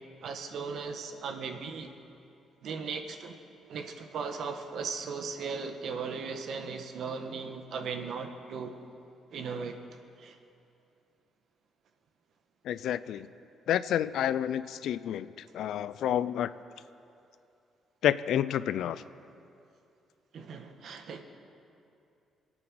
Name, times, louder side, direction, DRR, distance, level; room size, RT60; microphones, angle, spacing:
voice 1, 0.2-1.9 2.6-3.4 3.7-8.8 9.3-9.8 10.2-10.4 20.3-21.2, right 5 dB, 70° right, 6 dB, 1.4 m, -37 dB
voice 2, 12.7-13.3 13.7-15.3 15.5-16.5 18.0-19.0, left 10 dB, 80° left, 15 dB, 0.5 m, -29 dB
23.0 x 9.0 x 6.3 m, 2.6 s
cardioid pair, 90°, 0 cm